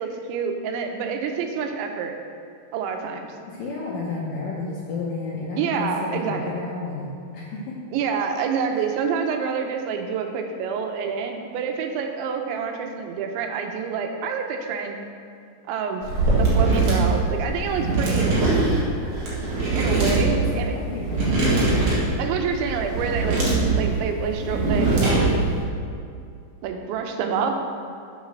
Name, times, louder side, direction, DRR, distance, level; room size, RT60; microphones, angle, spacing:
voice 1, 0.0-2.2 2.7-3.3 5.6-6.5 7.9-15.0 15.7-18.3 19.7-20.8 22.2-23.4 23.8-25.5 26.6-27.6, right 6 dB, 85° right, 4 dB, 3.1 m, -27 dB
voice 2, 3.5-7.7 8.7-8.9 19.9-21.6, left 3 dB, 70° left, -5 dB, 2.2 m, -32 dB
sound 1, 16.0-25.6, right 3 dB, 50° right, 2.6 m, -22 dB
7.5 x 7.3 x 6.2 m, 2.4 s
omnidirectional pair, 5.2 m